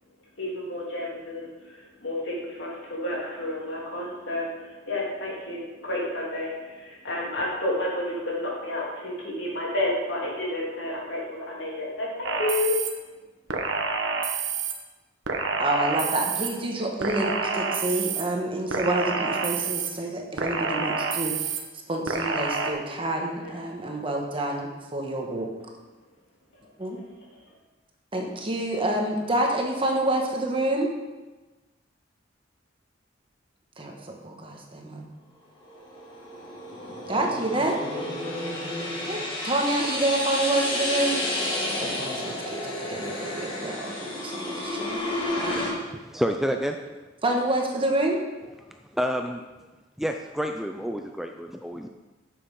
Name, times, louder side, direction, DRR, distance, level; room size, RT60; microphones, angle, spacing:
voice 1, 0.4-12.8 23.4-23.5, left 1 dB, 70° left, -4 dB, 3.0 m, -30 dB
sound 1, 12.3-12.9 13.5-14.7 15.3-16.5 17.0-18.2 18.7-19.9 20.4-21.6 22.1-22.7, right 4 dB, 75° right, 1.1 m, -28 dB
voice 2, 15.6-21.6 21.9-25.5 26.8-27.0 28.1-30.9 33.8-35.1 37.1-37.8 39.1-41.3 41.8-45.0 47.2-48.2, right 1 dB, 30° right, 1 dB, 1.3 m, -28 dB
sound 2, 35.6-45.7, left 1 dB, 25° left, 2.0 m, -31 dB
voice 3, 45.5-46.8 48.9-49.5 50.0-51.9, equal, ahead, 4 dB, 0.4 m, -29 dB
9.0 x 7.0 x 5.4 m, 1.2 s
head